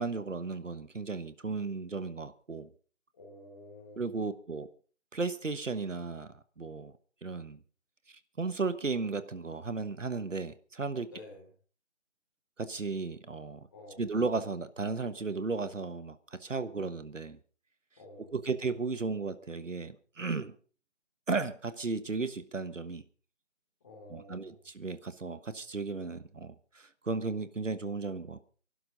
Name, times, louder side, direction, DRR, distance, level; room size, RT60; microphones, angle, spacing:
voice 1, 0.0-2.7 4.0-4.7 5.1-6.9 7.2-7.6 8.1-11.1 12.6-13.7 14.0-17.4 18.3-20.5 21.3-23.0 24.1-28.5, right 4 dB, 70° right, 1.3 m, -35 dB
voice 2, 3.1-4.1 11.1-11.4 13.7-14.2 18.0-18.5 23.8-24.6, left 2 dB, 15° left, 3.2 m, -50 dB
25.0 x 11.5 x 3.9 m
figure-of-eight pair, 170°, 39 cm